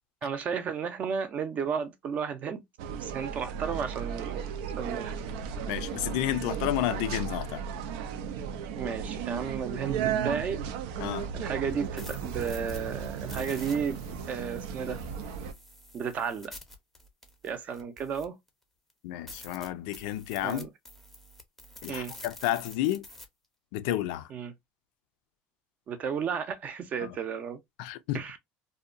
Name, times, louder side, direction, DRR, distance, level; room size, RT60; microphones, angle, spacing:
voice 1, 0.2-2.6 3.0-4.5 4.8-5.1 8.7-10.6 11.3-15.0 15.9-16.5 17.4-18.4 20.4-20.7 21.9-22.1 24.3-24.5 25.9-27.6 28.1-28.4, right 6 dB, 35° right, 0.5 m, -33 dB
sound 1, 2.8-15.5, right 8 dB, 85° right, 0.4 m, -35 dB
voice 2, 5.7-7.7 11.0-11.3 19.0-20.7 21.8-23.1 23.7-24.3 27.0-27.2 27.8-28.2, left 13 dB, 85° left, 0.4 m, -31 dB
sound 2, 11.7-18.5 18.9-19.0 19.3-23.2, left 1 dB, 5° left, 0.6 m, -49 dB
2.7 x 2.1 x 2.4 m
cardioid pair, 145°, 4 cm